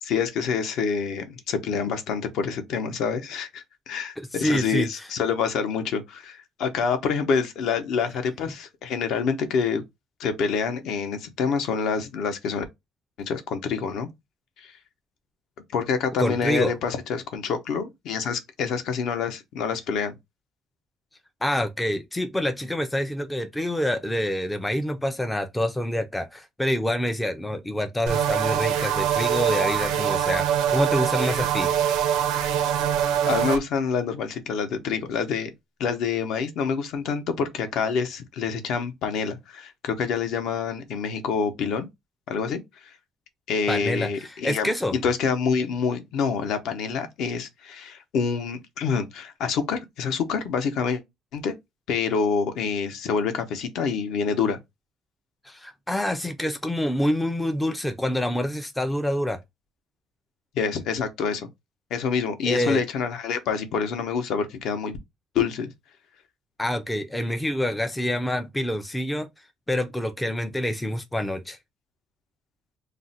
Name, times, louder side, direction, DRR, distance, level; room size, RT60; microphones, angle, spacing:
voice 1, 0.0-9.8 10.2-12.6 13.2-14.1 14.6-14.7 15.7-20.1 33.2-35.5 35.8-41.9 42.3-42.9 43.5-51.0 51.3-51.5 51.9-54.6 60.5-61.5 61.9-65.0 65.3-65.7, left 6 dB, 60° left, 0.6 m, -27 dB
voice 2, 4.2-5.1 16.2-16.8 21.4-31.7 43.7-44.9 55.4-59.4 62.4-62.8 66.6-69.3 69.7-71.6, left 1 dB, 5° left, 0.3 m, -27 dB
sound 1, 28.1-33.6, right 9 dB, 75° right, 0.4 m, -24 dB
2.4 x 2.1 x 3.9 m
cardioid pair, 155°, 0 cm